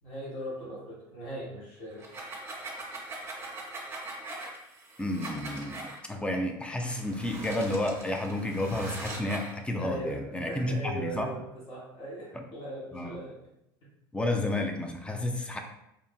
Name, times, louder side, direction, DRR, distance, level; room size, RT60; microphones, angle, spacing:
voice 1, 0.0-2.0 9.8-11.4 11.7-13.3, right 1 dB, 55° left, -8 dB, 1.4 m, -39 dB
sound 1, 1.9-6.0 6.8-9.6, right 2 dB, 20° right, 0.8 m, -41 dB
voice 2, 5.0-11.3 12.3-12.4 12.9-13.2 14.1-15.6, left 1 dB, 10° left, 3 dB, 0.4 m, -31 dB
2.8 x 2.4 x 2.2 m, 0.82 s
hypercardioid pair, 75°, 12 cm